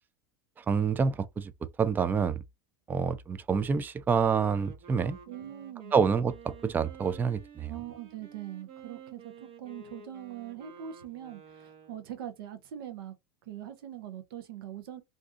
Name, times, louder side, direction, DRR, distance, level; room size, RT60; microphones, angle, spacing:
voice 1, 0.6-1.5 1.8-2.4 2.9-5.2 5.9-7.7, right 6 dB, 15° right, 0.3 m, -27 dB
Wind instrument woodwind instrument, 4.3-12.2, right 5 dB, 55° right, 1.0 m, -51 dB
voice 2, 5.3-5.9 7.7-13.1 13.5-15.0, right 11 dB, 80° right, 0.7 m, -42 dB
2.6 x 2.4 x 3.6 m
supercardioid pair, 110°, 12 cm